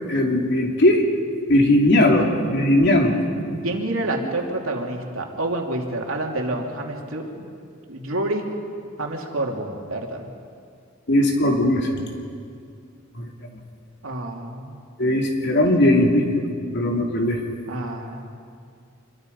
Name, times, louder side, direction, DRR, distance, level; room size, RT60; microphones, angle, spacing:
voice 1, 0.1-1.0 1.5-3.2 4.2-4.3 11.1-12.0 13.2-13.3 15.0-16.3 16.7-17.4, left 1 dB, 60° left, 1 dB, 2.9 m, -18 dB
voice 2, 3.6-7.5 7.9-8.5 9.0-10.3 14.0-14.8 17.7-18.3, right 2 dB, 75° right, 1 dB, 2.9 m, -28 dB
26.0 x 23.0 x 5.4 m, 2.3 s
head